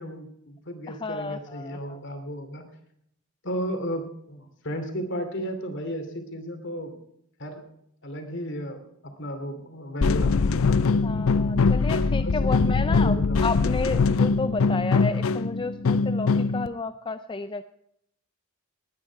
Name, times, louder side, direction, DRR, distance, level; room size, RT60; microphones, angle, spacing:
voice 1, 0.0-2.6 3.4-7.0 7.4-7.6 8.0-10.8 11.9-13.4, equal, 55° left, 6 dB, 2.8 m, -34 dB
voice 2, 0.9-2.0 11.0-17.6, left 3 dB, 20° left, 10 dB, 0.4 m, -32 dB
sound 1, 10.0-16.7, left 4 dB, 70° left, 0.5 m, -22 dB
20.0 x 9.8 x 4.7 m, 0.74 s
head